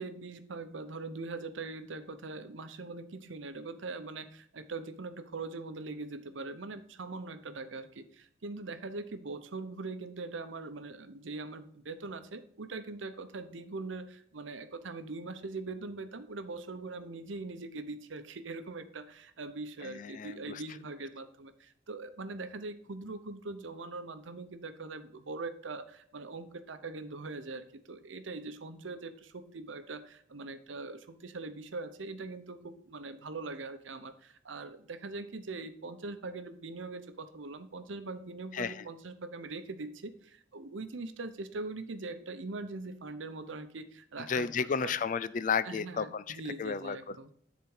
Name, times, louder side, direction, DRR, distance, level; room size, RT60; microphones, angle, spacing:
voice 1, 0.0-44.9 45.6-47.3, right 3 dB, 85° right, 10 dB, 0.8 m, -42 dB
voice 2, 19.8-20.6 38.5-38.7 44.3-47.2, left 6 dB, 40° left, 16 dB, 0.4 m, -33 dB
10.5 x 4.2 x 4.8 m, 0.64 s
head